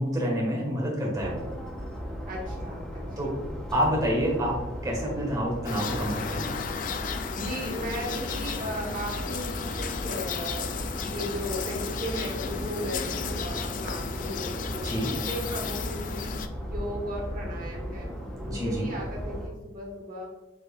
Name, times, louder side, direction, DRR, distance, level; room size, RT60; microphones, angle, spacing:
voice 1, 0.0-1.4 3.2-3.3 3.7-6.5 14.8-15.1 18.5-18.9, equal, 20° right, -3 dB, 1.5 m, -28 dB
sound 1, 1.1-19.5, equal, 5° left, 0.7 m, -36 dB
voice 2, 2.3-3.3 7.3-10.6 11.0-16.3 16.6-20.3, equal, 45° right, -1 dB, 1.3 m, -36 dB
sound 2, 5.6-16.5, left 6 dB, 45° left, 0.3 m, -35 dB
6.8 x 3.2 x 2.4 m, 1.1 s
head